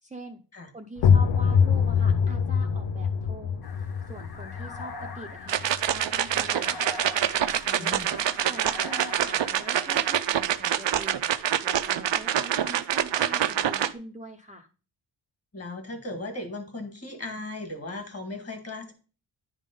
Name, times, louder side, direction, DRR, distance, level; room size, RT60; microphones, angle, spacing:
voice 1, 0.0-0.4 0.7-6.8 7.3-11.2 11.6-14.7, right 1 dB, 15° right, 2 dB, 0.6 m, -43 dB
sound 1, 1.0-6.5, left 6 dB, 65° left, 0.6 m, -24 dB
sound 2, 3.6-10.1, left 3 dB, 50° left, 1.1 m, -42 dB
sound 3, 5.5-13.9, right 10 dB, 65° right, 0.6 m, -26 dB
voice 2, 7.8-8.1 15.5-18.9, left 2 dB, 30° left, 6 dB, 1.9 m, -37 dB
10.5 x 3.7 x 5.3 m, 0.36 s
wide cardioid pair, 125°, 47 cm